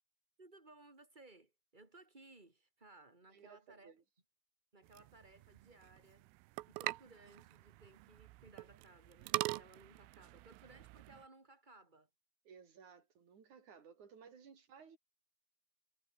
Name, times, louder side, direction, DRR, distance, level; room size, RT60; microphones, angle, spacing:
voice 1, 0.4-3.9 4.7-6.3 6.6-12.1, right 2 dB, 10° right, 4.5 m, -61 dB
voice 2, 3.3-4.0 12.4-15.0, right 6 dB, 40° right, 4.1 m, -58 dB
sound 1, 4.8-11.2, right 22 dB, 85° right, 3.3 m, -44 dB
omnidirectional pair, 5.7 m